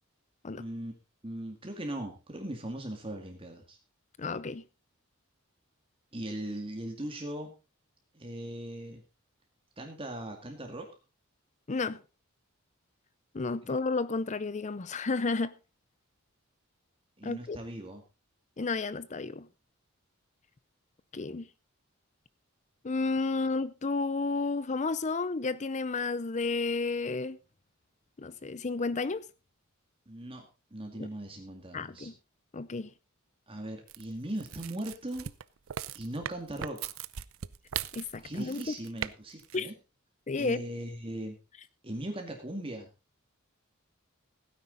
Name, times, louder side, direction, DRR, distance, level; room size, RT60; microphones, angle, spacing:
voice 1, 0.6-0.9 1.2-3.8 6.1-7.5 8.1-9.0 9.8-10.9 13.6-13.8 17.2-18.0 30.1-32.1 33.5-35.3 35.9-36.9 38.2-39.7 40.4-41.4 41.8-42.9, right 1 dB, 25° right, 2.1 m, -39 dB
voice 2, 4.2-4.6 11.7-12.0 13.3-15.5 17.2-17.6 18.6-19.5 21.1-21.5 22.8-27.4 28.2-29.2 31.0-31.1 31.7-32.1 32.5-32.9 37.9-38.6 39.5-39.7 40.3-40.6, left 3 dB, 35° left, 0.5 m, -32 dB
sound 1, 33.9-39.1 39.4-39.6, right 9 dB, 70° right, 0.6 m, -39 dB
16.5 x 9.8 x 3.9 m
head